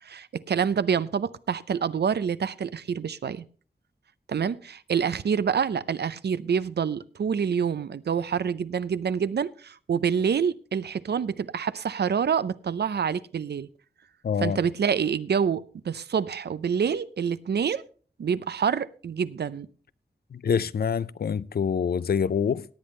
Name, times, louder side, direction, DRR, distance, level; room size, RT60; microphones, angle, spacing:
voice 1, 0.0-3.4 4.3-13.7 14.4-17.8 18.2-19.7, right 7 dB, 80° right, 0.5 m, -27 dB
voice 2, 14.2-14.6 20.3-22.7, left 7 dB, 65° left, 0.4 m, -26 dB
17.5 x 8.6 x 3.2 m
cardioid pair, 55°, 17 cm